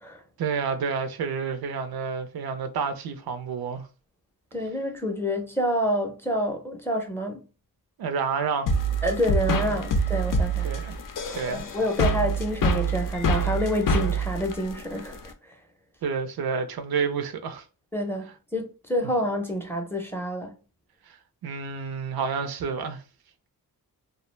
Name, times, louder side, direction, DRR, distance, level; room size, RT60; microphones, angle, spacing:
voice 1, 0.4-3.9 8.0-8.7 10.6-11.0 11.3-11.7 16.0-17.6 21.1-21.2 21.4-23.0, right 5 dB, 70° right, 0.5 m, -29 dB
voice 2, 4.5-7.4 9.0-10.7 11.5-15.3 17.9-18.3 18.5-20.5, equal, 5° left, 0.5 m, -28 dB
sound 1, 8.7-15.3, right 2 dB, 55° left, 0.5 m, -26 dB
2.3 x 2.0 x 3.1 m
wide cardioid pair, 95°, 38 cm